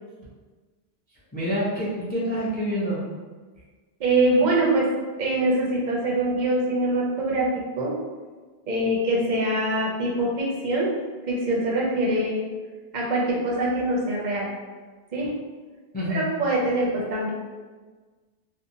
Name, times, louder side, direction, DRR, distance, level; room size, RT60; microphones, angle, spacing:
voice 1, 1.3-3.0 15.9-16.3, equal, 15° left, -7 dB, 0.3 m, -27 dB
voice 2, 4.0-4.9 5.2-7.5 7.8-7.9 8.7-10.9 11.3-12.4 12.9-14.5 15.1-15.3 16.1-17.3, right 1 dB, 55° right, -4 dB, 0.6 m, -23 dB
2.6 x 2.1 x 2.7 m, 1.4 s
omnidirectional pair, 1.1 m